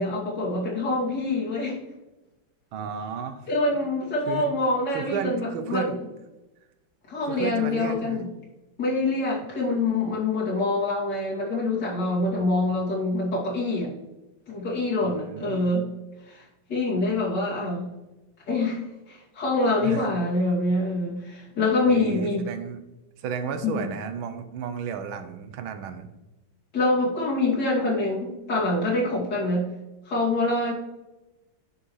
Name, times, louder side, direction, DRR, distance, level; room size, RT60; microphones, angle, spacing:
voice 1, 0.0-1.8 3.5-5.9 7.1-8.3 8.8-13.9 14.5-15.9 16.3-16.4 16.7-17.8 18.5-18.8 19.1-22.5 23.6-23.9 26.7-29.7 30.1-30.7, left 2 dB, 55° left, -7 dB, 3.1 m, -25 dB
voice 2, 2.7-3.5 3.7-3.8 4.3-4.5 4.9-6.0 7.3-8.3 12.3-12.8 15.0-15.7 17.0-17.4 19.8-20.1 21.9-22.8 23.2-26.1, right 6 dB, 75° right, 8 dB, 1.5 m, -33 dB
10.0 x 5.1 x 3.2 m, 1.0 s
omnidirectional pair, 2.3 m